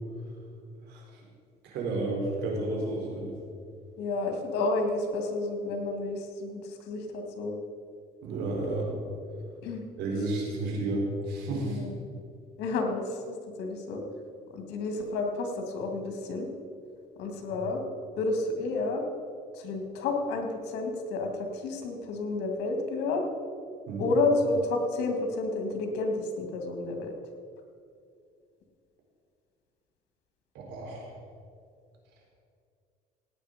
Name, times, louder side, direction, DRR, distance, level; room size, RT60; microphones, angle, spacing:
voice 1, 1.6-3.3 8.2-8.9 10.0-11.9 17.5-17.6 23.9-24.1 30.5-31.1, right 2 dB, 85° right, -1 dB, 4.0 m, -31 dB
voice 2, 4.0-7.5 9.6-9.8 11.7-11.9 12.6-14.0 14.5-16.5 17.2-17.8 18.2-19.0 19.6-23.2 24.0-27.1, left 3 dB, 90° left, 4 dB, 2.1 m, -30 dB
17.0 x 9.3 x 5.1 m, 2.4 s
cardioid pair, 110°, 17 cm